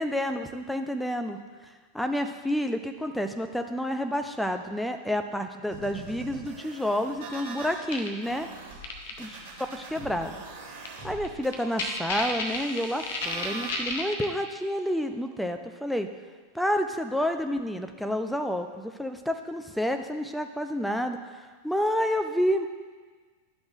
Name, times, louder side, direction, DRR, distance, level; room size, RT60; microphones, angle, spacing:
voice 1, 0.0-1.4 1.9-8.5 9.2-9.4 9.7-10.4 11.0-16.1 16.5-21.3 21.6-22.7, equal, ahead, 6 dB, 0.6 m, -29 dB
sound 1, 5.7-7.8 8.2-13.7, right 3 dB, 45° right, 1.9 m, -43 dB
sound 2, 7.9-8.1 8.8-9.1 10.9-11.0 11.2-11.3 11.5-14.3, left 3 dB, 55° left, 1.0 m, -31 dB
12.5 x 6.0 x 2.5 m, 1.4 s
figure-of-eight pair, 90°, 0 cm